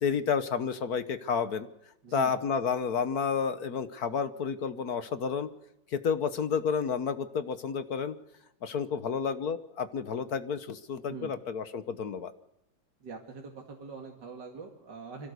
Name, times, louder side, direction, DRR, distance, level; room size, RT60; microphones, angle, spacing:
voice 1, 0.0-1.7 2.1-5.5 5.9-8.2 8.6-12.3, left 6 dB, 55° left, 12 dB, 1.5 m, -30 dB
voice 2, 13.0-15.3, right 4 dB, 65° right, 1 dB, 2.8 m, -43 dB
25.0 x 17.5 x 8.2 m, 0.81 s
omnidirectional pair, 2.1 m